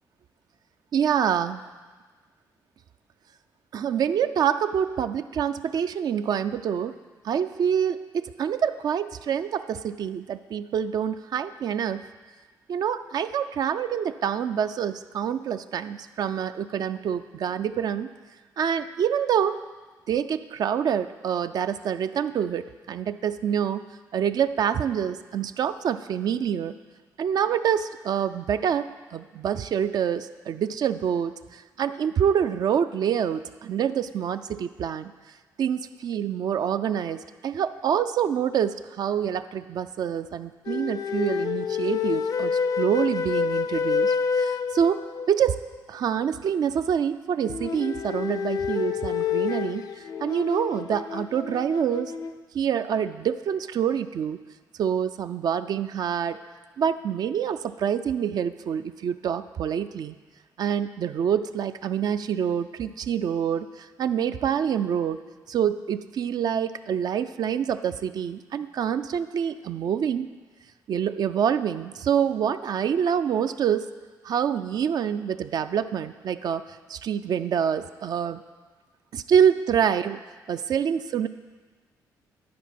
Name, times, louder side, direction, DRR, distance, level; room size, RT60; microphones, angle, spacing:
voice 1, 0.9-1.6 3.7-6.9 7.2-12.0 12.7-18.1 18.6-19.6 20.1-23.9 24.1-26.8 27.2-35.1 35.6-45.6 45.9-52.1 52.5-54.4 54.8-56.4 56.8-60.2 60.6-65.2 65.5-70.3 70.9-73.9 74.2-76.6 76.9-78.4 79.1-80.2 80.5-81.3, right 8 dB, 60° right, 11 dB, 0.4 m, -26 dB
sound 1, 40.7-45.5 47.4-52.4, left 6 dB, 60° left, 0.4 m, -28 dB
10.5 x 4.3 x 5.8 m, 1.3 s
cardioid pair, 75°, 8 cm